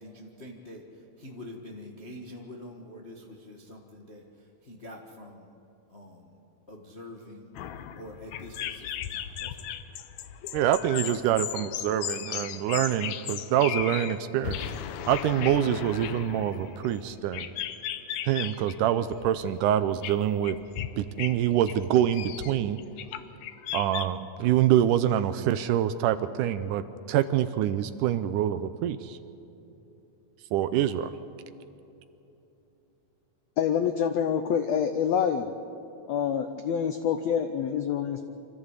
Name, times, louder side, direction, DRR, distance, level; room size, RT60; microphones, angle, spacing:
voice 1, 0.0-4.2 4.6-5.5 5.9-6.4 6.7-7.5 8.0-9.7, left 1 dB, 50° left, -1 dB, 0.7 m, -45 dB
sound 1, 7.5-14.2 14.4-18.8 19.1-19.4 20.0-20.9 21.2-21.4 21.7-24.0, left 10 dB, 70° left, 1.9 m, -36 dB
voice 2, 10.5-14.6 15.1-17.5 18.3-20.6 21.0-22.8 23.7-29.2 30.5-31.1, right 11 dB, 80° right, 12 dB, 2.0 m, -25 dB
voice 3, 33.6-35.5 36.1-38.3, left 8 dB, 90° left, 8 dB, 1.5 m, -26 dB
25.5 x 14.5 x 8.2 m, 2.9 s
omnidirectional pair, 4.0 m